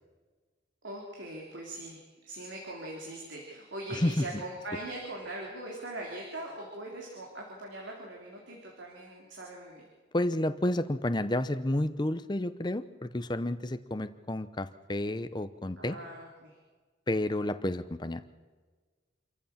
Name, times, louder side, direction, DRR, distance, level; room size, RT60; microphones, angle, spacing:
voice 1, 0.8-9.8 15.8-16.6, right 1 dB, 80° right, -2 dB, 3.5 m, -41 dB
voice 2, 3.9-4.2 10.1-16.0 17.1-18.2, left 1 dB, 20° left, 11 dB, 0.7 m, -30 dB
27.0 x 14.5 x 7.2 m, 1.4 s
head